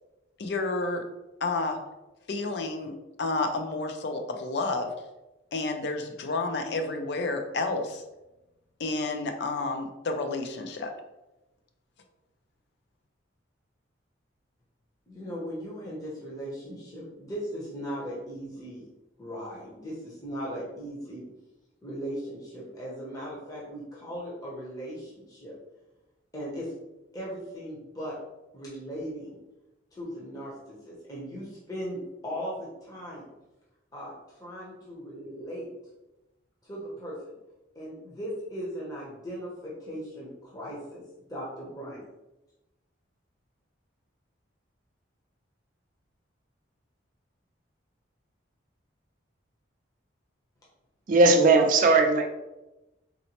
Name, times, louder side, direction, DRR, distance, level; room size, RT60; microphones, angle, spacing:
voice 1, 0.4-1.0 1.4-1.8 2.3-4.9 5.5-8.0 8.8-10.9, left 3 dB, 55° left, 5 dB, 0.4 m, -30 dB
voice 2, 15.1-18.8 19.2-21.3 21.8-25.5 26.3-26.7 27.1-28.1 28.5-29.4 29.9-33.3 33.9-35.7 36.6-37.1 37.8-41.0 41.3-42.0, equal, 20° left, -6 dB, 0.7 m, -38 dB
voice 3, 51.1-52.3, right 3 dB, 40° right, 4 dB, 0.3 m, -18 dB
3.9 x 2.1 x 2.8 m, 0.99 s
head